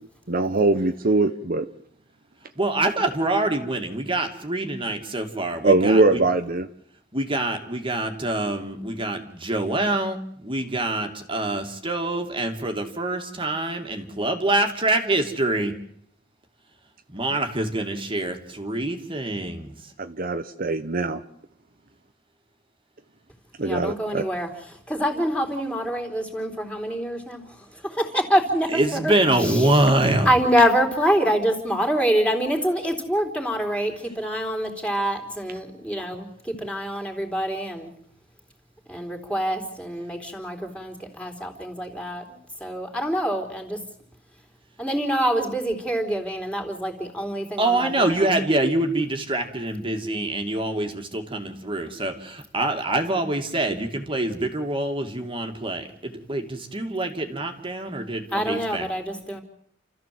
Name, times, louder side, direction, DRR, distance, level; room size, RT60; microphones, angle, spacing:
voice 1, 0.3-1.6 5.6-6.7 20.0-21.2 23.6-24.2, right 2 dB, 50° right, 8 dB, 1.0 m, -21 dB
voice 2, 2.6-6.2 7.1-15.7 17.1-19.7 28.7-30.3 47.6-58.9, right 2 dB, 30° right, 4 dB, 2.4 m, -25 dB
voice 3, 23.6-29.1 29.4-29.7 30.3-37.9 38.9-43.8 44.8-48.4 58.3-59.4, equal, 5° left, 3 dB, 3.7 m, -26 dB
29.0 x 14.5 x 7.8 m, 0.70 s
head